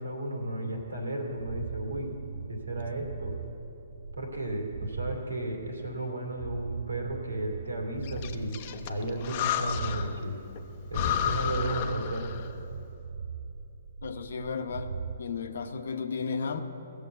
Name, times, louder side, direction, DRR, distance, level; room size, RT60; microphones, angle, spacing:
voice 1, 0.0-2.1 2.5-3.4 4.2-8.6 8.9-10.4 10.9-12.3, right 1 dB, 80° right, 2 dB, 2.6 m, -34 dB
sound 1, 0.7-5.2 5.6-10.2 10.6-11.1 11.4-15.2, right 6 dB, 55° right, 0.4 m, -40 dB
Breathing, 8.0-10.2 10.6-10.7 10.9-12.6, left 8 dB, 40° left, 0.7 m, -32 dB
voice 2, 14.0-14.9 15.2-16.6, left 5 dB, 65° left, 8 dB, 0.9 m, -33 dB
17.0 x 7.1 x 8.0 m, 2.9 s
figure-of-eight pair, 125°, 0 cm